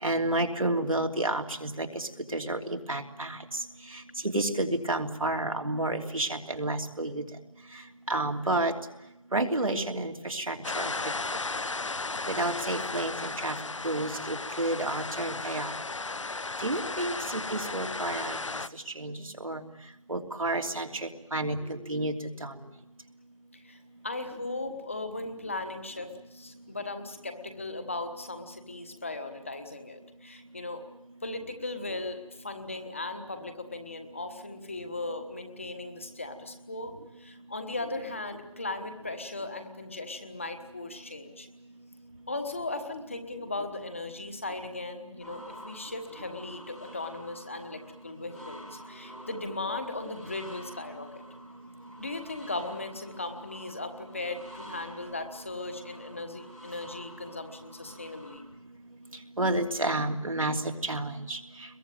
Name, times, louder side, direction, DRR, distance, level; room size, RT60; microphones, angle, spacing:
voice 1, 0.0-3.4 4.3-7.2 8.1-8.7 9.3-10.9 12.3-13.6 13.8-15.7 16.6-18.4 19.0-19.6 20.1-22.1 22.4-22.5 59.4-60.6 60.8-61.4, right 2 dB, 90° right, 3 dB, 3.1 m, -30 dB
sound 1, 10.6-18.7, left 3 dB, 65° left, 0.9 m, -35 dB
voice 2, 16.8-17.1 23.6-30.9 31.2-41.5 42.3-51.2 52.0-58.4, left 2 dB, 25° left, 7 dB, 1.3 m, -37 dB
sound 2, 45.2-58.4, equal, ahead, 1.4 m, -50 dB
23.5 x 22.0 x 9.2 m, 0.93 s
figure-of-eight pair, 175°, 17 cm